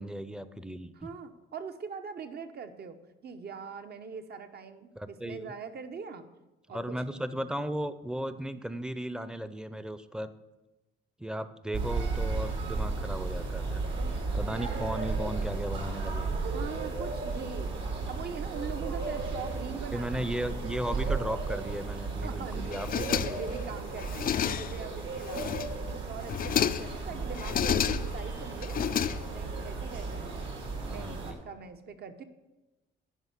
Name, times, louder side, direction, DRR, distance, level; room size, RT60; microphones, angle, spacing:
voice 1, 0.0-0.9 5.0-5.5 6.7-10.3 11.2-13.8 14.3-16.3 19.9-23.4 30.8-31.4, right 1 dB, 5° right, 12 dB, 0.6 m, -36 dB
voice 2, 1.0-3.0 3.2-6.3 6.7-6.8 7.3-7.4 14.0-14.1 16.5-17.7 18.1-20.2 22.2-25.6 25.9-28.8 29.3-30.5 30.9-32.2, right 5 dB, 55° right, 8 dB, 1.0 m, -42 dB
sound 1, 11.7-31.3, right 3 dB, 75° right, 2.7 m, -34 dB
sound 2, 22.7-23.6 24.0-24.9 25.2-25.9 26.2-27.0 27.4-28.2 28.6-29.6, left 9 dB, 45° left, 0.4 m, -31 dB
9.8 x 5.5 x 8.2 m, 1.1 s
cardioid pair, 90°, 20 cm